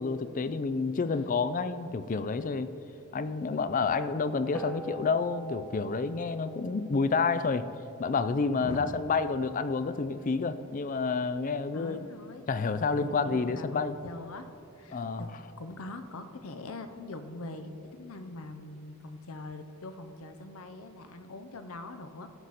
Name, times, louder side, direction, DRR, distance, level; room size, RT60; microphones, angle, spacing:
voice 1, 0.0-2.7 3.1-7.7 8.0-12.0 12.5-14.0 14.9-15.2, left 4 dB, 35° left, 13 dB, 0.4 m, -29 dB
voice 2, 1.0-1.5 8.6-9.1 11.7-12.5 12.9-14.5 14.8-22.3, left 2 dB, 70° left, 8 dB, 0.7 m, -43 dB
sound 1, 4.5-9.2, right 1 dB, 5° left, 0.8 m, -45 dB
16.0 x 6.4 x 4.1 m, 2.7 s
head